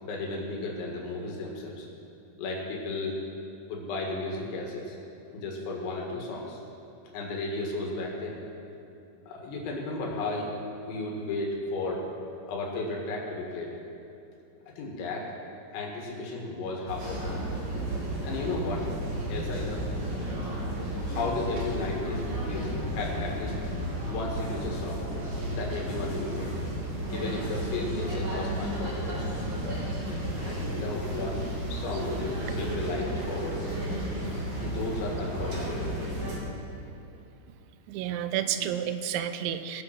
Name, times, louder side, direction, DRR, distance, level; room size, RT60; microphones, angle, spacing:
voice 1, 0.0-1.9 2.4-3.2 3.7-5.0 5.3-6.6 7.1-8.4 9.3-10.5 10.9-12.1 12.5-13.7 14.8-15.3 15.7-17.4 18.2-18.9 19.3-19.8 21.1-23.5 24.1-25.0 25.4-26.5 27.1-29.3 30.4-31.4 31.7-33.8 34.6-35.9, left 2 dB, 80° left, -1 dB, 4.3 m, -34 dB
sound 1, 16.9-36.4, right 1 dB, 35° right, 2.6 m, -33 dB
voice 2, 37.9-39.8, right 10 dB, 90° right, 10 dB, 3.0 m, -30 dB
21.5 x 7.7 x 6.0 m, 2.9 s
omnidirectional pair, 5.2 m